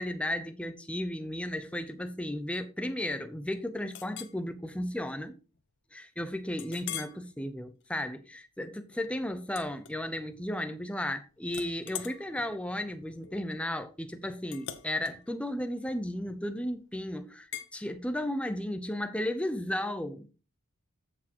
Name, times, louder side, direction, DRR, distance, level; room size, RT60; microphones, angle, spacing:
voice 1, 0.0-5.4 5.9-20.3, left 1 dB, 5° left, 0.7 m, -34 dB
Chink clink, 3.9-4.4 4.9-5.1 5.6-5.7 6.6-7.2 7.7-8.0 9.5-10.4 10.8-11.2 11.5-16.6 17.5-17.7, left 10 dB, 50° left, 0.9 m, -44 dB
13.5 x 6.1 x 3.0 m
head